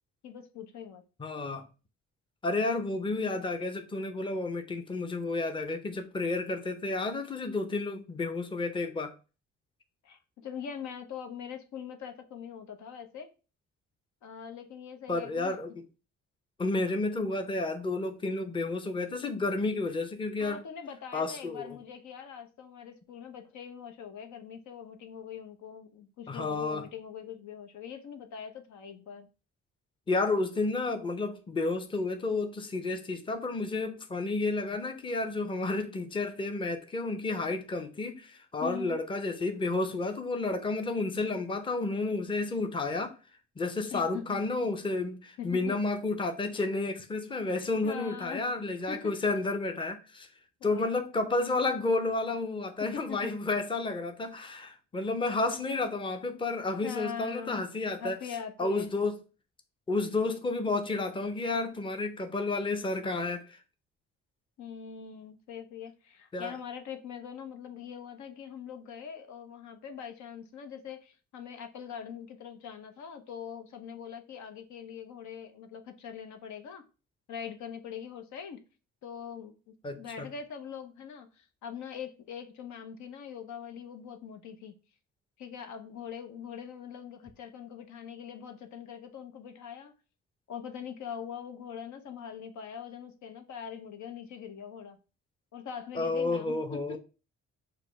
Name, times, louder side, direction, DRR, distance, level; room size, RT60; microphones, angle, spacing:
voice 1, 0.2-1.0 10.0-13.3 14.2-15.6 20.4-29.3 38.6-39.0 43.9-44.4 45.4-45.8 47.8-48.4 48.9-49.1 50.6-51.0 52.8-53.3 56.8-57.6 58.0-58.9 64.6-76.8 77.3-78.6 79.0-84.7 85.4-90.0 90.5-95.0 95.5-97.0, left 7 dB, 70° left, 0.7 m, -42 dB
voice 2, 1.2-1.7 2.4-9.1 15.1-15.7 16.6-20.6 21.1-21.8 26.3-26.8 30.1-43.1 43.6-50.3 50.6-58.2 58.6-59.2 59.9-63.6 66.3-66.5 79.8-80.3 95.9-97.0, left 3 dB, 15° left, 0.6 m, -31 dB
4.9 x 2.1 x 4.4 m
cardioid pair, 90°, 30 cm